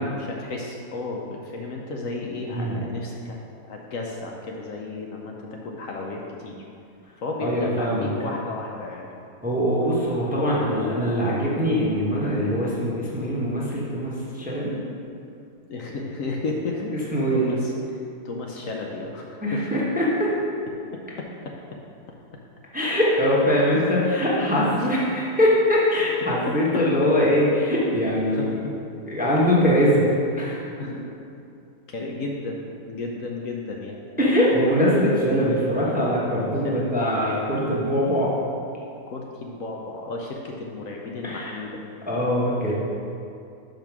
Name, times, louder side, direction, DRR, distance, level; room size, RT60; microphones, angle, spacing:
voice 1, 0.1-3.4 3.7-6.6 7.2-9.1 15.7-17.7 18.2-19.8 20.9-21.5 22.7-22.9 23.8-23.9 24.6-24.9 26.5-26.8 28.3-28.7 30.8-31.0 31.9-34.0 35.8-36.0 36.6-36.9 39.1-41.8, left 3 dB, 65° left, -1 dB, 1.0 m, -33 dB
voice 2, 7.4-8.1 9.4-14.8 17.1-17.5 19.4-20.3 22.7-28.6 29.1-30.6 34.2-38.3 41.2-41.5 42.1-42.7, equal, 5° right, -6 dB, 0.8 m, -22 dB
5.7 x 5.2 x 6.0 m, 2.6 s
omnidirectional pair, 1.7 m